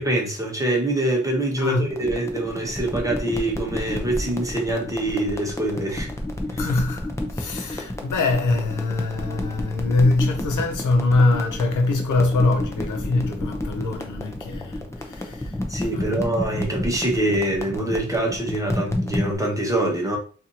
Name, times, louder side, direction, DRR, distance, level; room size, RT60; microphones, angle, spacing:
voice 1, 0.0-6.1 6.5-6.6 15.7-20.2, right 1 dB, 10° right, 0.9 m, -24 dB
voice 2, 1.6-2.0 6.6-15.6 15.9-16.5, left 2 dB, 80° left, 0.8 m, -23 dB
sound 1, 1.9-19.3, left 1 dB, 10° left, 0.6 m, -31 dB
4.2 x 2.6 x 2.8 m
wide cardioid pair, 120°, 30 cm